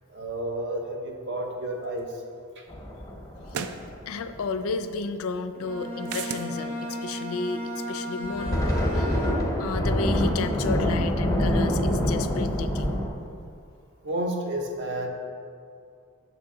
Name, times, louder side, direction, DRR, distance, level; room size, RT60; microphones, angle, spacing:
voice 1, 0.1-2.2 2.6-2.7 14.0-15.1, right 1 dB, 55° right, 2 dB, 0.7 m, -31 dB
sound 1, 2.1-2.2 3.5-3.8 6.1-6.5, right 7 dB, 85° right, 0.4 m, -33 dB
sound 2, 2.7-4.4 8.3-13.1, equal, 15° left, 0.6 m, -25 dB
voice 2, 4.1-13.0, left 4 dB, 75° left, 9 dB, 0.4 m, -32 dB
Bowed string instrument, 5.5-9.8, equal, 30° right, 0.7 m, -35 dB
6.9 x 4.8 x 3.6 m, 2.4 s
head